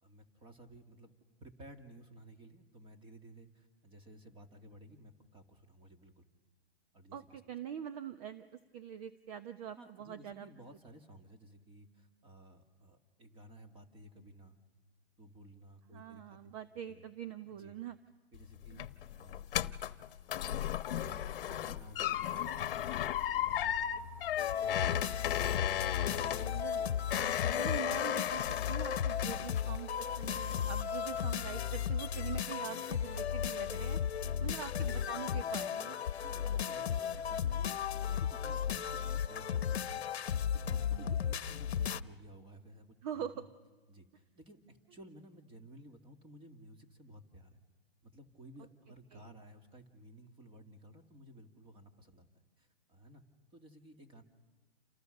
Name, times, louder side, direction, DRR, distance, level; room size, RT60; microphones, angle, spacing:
voice 1, 0.0-1.1 1.4-6.3 6.9-7.4 9.8-14.6 15.2-16.5 16.9-17.1 17.4-17.8 18.3-18.8 19.1-19.7 20.3-22.6 23.2-25.3 25.8-26.9 34.2-34.6 36.2-36.9 37.1-37.7 38.0-40.1 40.5-43.5 43.9-47.6 48.0-52.3 52.6-53.2 53.5-54.2, right 1 dB, 15° right, 7 dB, 2.4 m, -55 dB
voice 2, 7.1-8.4 8.7-10.5 15.9-18.0 18.7-18.9 26.4-26.9 27.5-34.0 34.4-36.0 40.8-41.1 43.0-43.4 49.1-49.2, right 9 dB, 35° right, 11 dB, 1.0 m, -44 dB
sound 1, 18.3-29.9 30.2-30.8 31.1-31.3, left 11 dB, 60° left, 1.1 m, -35 dB
sound 2, 24.4-42.0, left 8 dB, 80° left, 1.0 m, -35 dB
29.0 x 28.5 x 6.7 m, 1.2 s
hypercardioid pair, 145°, 31 cm